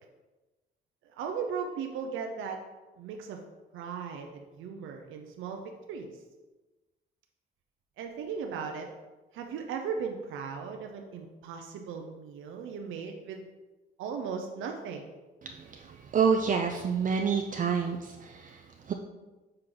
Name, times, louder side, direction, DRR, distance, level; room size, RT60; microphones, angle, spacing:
voice 1, 1.1-2.6 3.0-3.4 3.7-6.1 8.0-8.9 9.3-13.4 14.0-15.1, right 6 dB, 85° right, 3 dB, 0.6 m, -37 dB
voice 2, 15.4-18.9, right 6 dB, 40° right, 4 dB, 0.5 m, -28 dB
6.5 x 4.4 x 3.8 m, 1.2 s
cardioid pair, 90°, 20 cm